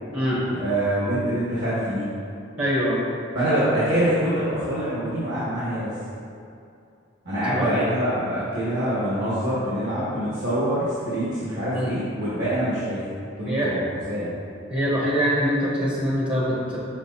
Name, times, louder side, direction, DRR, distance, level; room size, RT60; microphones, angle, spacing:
voice 1, 0.5-2.1 3.3-5.9 7.2-13.0 13.4-13.8 14.1-14.3, right 1 dB, 60° right, -11 dB, 1.5 m, -25 dB
voice 2, 2.6-3.0 7.5-7.7 11.7-11.9 13.4-13.7 14.7-16.8, equal, 25° right, -6 dB, 0.9 m, -23 dB
6.3 x 6.1 x 2.7 m, 2.5 s
head